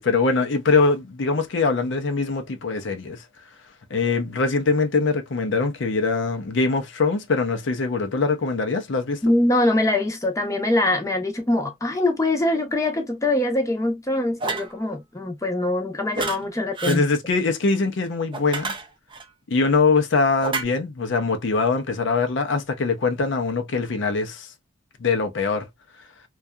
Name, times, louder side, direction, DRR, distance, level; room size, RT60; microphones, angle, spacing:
voice 1, 0.0-3.2 3.9-9.2 16.9-18.7 19.5-24.5 25.0-25.7, left 4 dB, 65° left, 0.6 m, -22 dB
voice 2, 9.2-17.0, left 1 dB, 15° left, 0.7 m, -23 dB
sound 1, 14.4-14.7 16.1-16.4 16.8-17.0 18.3-19.2 20.4-20.6, right 3 dB, 25° right, 0.4 m, -28 dB
2.6 x 2.3 x 2.2 m
head